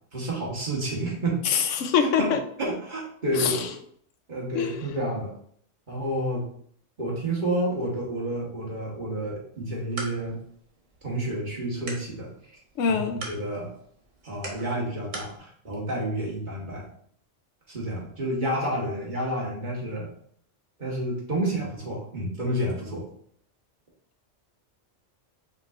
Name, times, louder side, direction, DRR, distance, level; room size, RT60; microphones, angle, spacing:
voice 1, 0.1-1.4 2.2-2.3 2.6-3.7 4.3-5.3 5.9-6.4 7.0-10.4 11.0-12.3 12.8-13.7 14.2-16.9 17.7-20.1 20.8-23.0, right 1 dB, 40° right, -4 dB, 1.4 m, -30 dB
voice 2, 1.5-2.4 3.4-3.7 4.5-4.8 12.8-13.2, left 7 dB, 90° left, 7 dB, 1.0 m, -24 dB
sound 1, 9.5-15.4, right 2 dB, 90° right, 1.4 m, -43 dB
5.2 x 3.9 x 2.4 m, 0.64 s
omnidirectional pair, 1.2 m